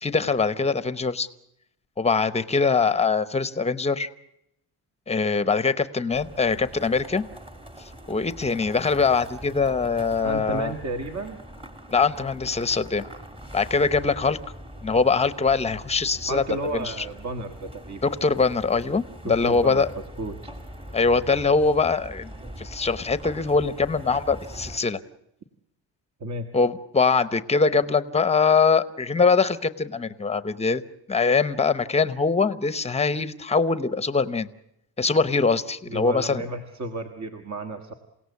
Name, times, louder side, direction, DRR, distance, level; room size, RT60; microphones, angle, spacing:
voice 1, 0.0-1.3 2.0-4.1 5.1-7.2 8.1-10.7 11.9-13.0 13.5-14.4 14.8-16.4 16.8-16.9 18.0-19.9 20.9-22.3 22.6-25.0 26.5-30.8 31.1-34.5 35.0-36.4, left 4 dB, 15° left, 14 dB, 0.8 m, -22 dB
sound 1, 6.1-24.8, equal, 15° right, 1.7 m, -42 dB
voice 2, 10.2-11.4 16.3-18.1 19.2-19.8 20.2-20.4 26.2-26.4 35.9-37.9, right 2 dB, 40° right, 6 dB, 1.6 m, -32 dB
28.0 x 17.5 x 8.3 m, 0.81 s
cardioid pair, 150°, 41 cm